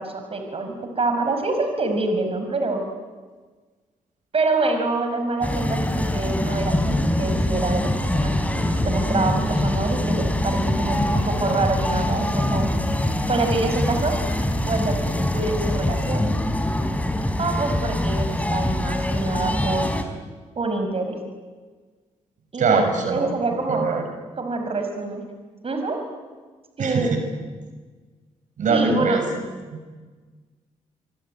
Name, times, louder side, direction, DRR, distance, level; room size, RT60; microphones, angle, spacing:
voice 1, 0.0-2.8 4.3-12.7 13.3-14.2 14.7-16.2 17.4-19.9 20.6-21.2 22.5-22.8 23.1-23.9 24.4-25.2 25.6-26.0 26.8-27.1 28.7-29.3, right 3 dB, 45° right, 5 dB, 5.9 m, -26 dB
sound 1, 5.4-20.0, left 1 dB, 10° left, 4.5 m, -24 dB
voice 2, 22.6-23.3 23.7-24.0 26.8-27.1 28.6-29.2 29.7-29.9, right 4 dB, 65° right, 5 dB, 6.4 m, -22 dB
25.5 x 25.0 x 9.3 m, 1.4 s
supercardioid pair, 60°, 14 cm